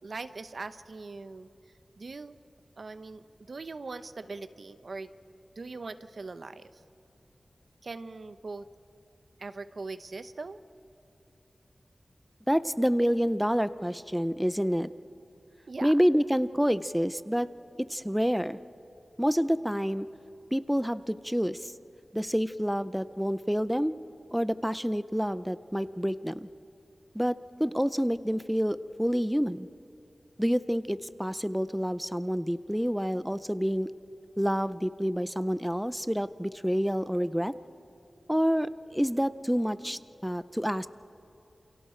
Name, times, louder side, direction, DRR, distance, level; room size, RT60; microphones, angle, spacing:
voice 1, 0.0-1.5 2.0-2.4 2.8-5.1 5.6-6.8 7.8-8.7 9.4-10.6 15.7-15.9, right 3 dB, 70° right, 12 dB, 0.8 m, -41 dB
voice 2, 12.5-14.9 15.8-17.5 17.8-18.6 19.2-20.1 20.5-21.7 22.1-24.0 24.3-26.5 27.1-29.7 30.4-33.9 34.4-37.5 38.3-40.9, equal, ahead, 14 dB, 0.5 m, -28 dB
28.5 x 28.5 x 4.5 m, 2.9 s
wide cardioid pair, 95°, 0 cm